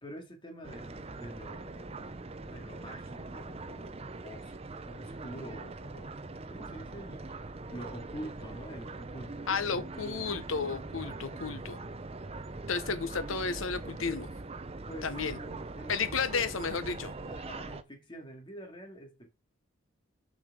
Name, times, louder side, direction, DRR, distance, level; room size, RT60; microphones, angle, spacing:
voice 1, 0.0-4.5 4.9-6.2 6.5-10.2 11.0-11.5 14.9-16.5 17.3-19.3, equal, 25° left, 2.2 m, -47 dB
sound 1, 0.6-17.8, right 3 dB, 30° right, 0.6 m, -42 dB
voice 2, 9.5-11.8 12.7-14.3 15.0-15.4 15.9-17.1, left 5 dB, 85° left, 1.0 m, -32 dB
7.4 x 5.0 x 6.1 m
head